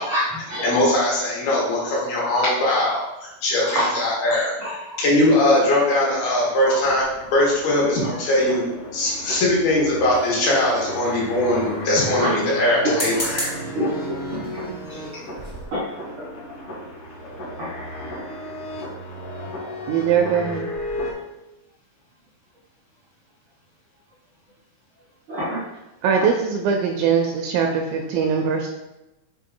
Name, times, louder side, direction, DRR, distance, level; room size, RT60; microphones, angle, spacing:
voice 1, 0.0-0.8 2.4-2.7 3.7-4.2 4.6-5.0 6.6-6.8 12.1-12.4 12.8-13.4 13.7-14.5 14.9-15.0 15.7-15.9 16.2-16.3 17.6-17.7 25.3-25.6 26.2-26.3, equal, 65° right, -9 dB, 1.2 m, -26 dB
voice 2, 0.6-7.0 7.3-13.5, left 1 dB, 80° left, -5 dB, 3.5 m, -21 dB
sound 1, 6.1-21.1, equal, 60° left, 1.5 m, -34 dB
sound 2, 10.1-10.9 12.8-13.7 14.4-14.7 15.1-15.2 15.4-15.7, equal, 30° left, 0.8 m, -31 dB
voice 3, 19.9-20.7 26.0-28.7, right 6 dB, 80° right, 3 dB, 2.0 m, -21 dB
6.7 x 3.8 x 3.7 m, 0.97 s
omnidirectional pair, 4.4 m